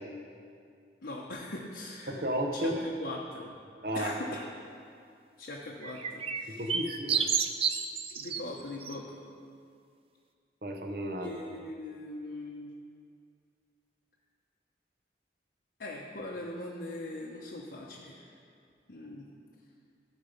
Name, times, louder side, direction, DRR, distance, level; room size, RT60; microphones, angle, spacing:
voice 1, 1.0-2.2 2.5-3.5 3.9-4.4 5.4-6.6 8.1-9.1 11.2-12.7 15.8-18.3 18.9-19.3, left 2 dB, 65° left, -3 dB, 1.0 m, -41 dB
voice 2, 2.1-2.8 3.8-4.1 6.6-7.3 10.6-11.3, equal, 55° right, 2 dB, 1.0 m, -32 dB
sound 1, 5.8-8.4 8.8-8.9, right 6 dB, 35° right, 0.4 m, -30 dB
15.0 x 5.2 x 5.2 m, 2.3 s
head